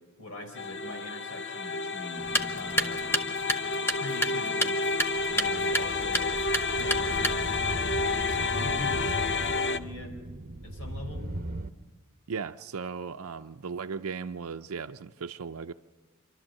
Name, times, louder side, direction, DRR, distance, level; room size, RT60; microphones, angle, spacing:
voice 1, 0.2-3.0 3.9-4.8 5.3-6.4 6.8-7.3 8.0-10.1 10.6-11.3, left 2 dB, 75° left, 4.2 m, -42 dB
sound 1, 0.6-9.8, left 3 dB, 55° left, 0.7 m, -30 dB
sound 2, 2.2-7.7, equal, 10° left, 0.9 m, -32 dB
sound 3, 4.9-11.7, right 1 dB, 40° right, 1.0 m, -38 dB
voice 2, 12.3-15.7, right 5 dB, 80° right, 0.5 m, -36 dB
27.5 x 12.5 x 7.5 m
head